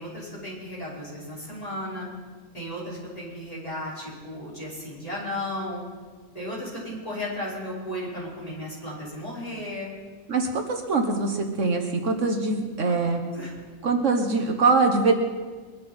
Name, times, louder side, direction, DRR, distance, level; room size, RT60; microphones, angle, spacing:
voice 1, 0.0-2.1 2.5-5.8 6.3-9.9 12.8-13.5, left 1 dB, 25° left, -8 dB, 5.7 m, -35 dB
voice 2, 10.3-13.2 13.8-15.1, right 3 dB, 65° right, 4 dB, 1.5 m, -23 dB
22.0 x 12.5 x 4.4 m, 1.4 s
omnidirectional pair, 1.4 m